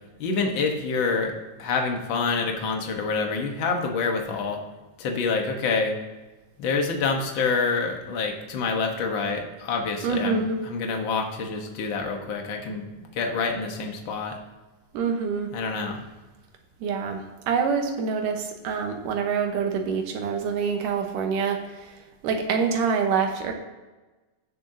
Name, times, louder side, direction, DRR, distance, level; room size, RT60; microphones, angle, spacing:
voice 1, 0.2-1.3 1.6-4.6 5.0-5.9 6.6-14.4 15.5-16.0, left 4 dB, 55° left, 3 dB, 1.4 m, -27 dB
voice 2, 10.0-10.6 14.9-15.5 16.8-17.2 17.5-21.9 22.2-23.5, right 5 dB, 80° right, 4 dB, 2.7 m, -26 dB
15.5 x 6.9 x 2.8 m, 1.2 s
omnidirectional pair, 3.7 m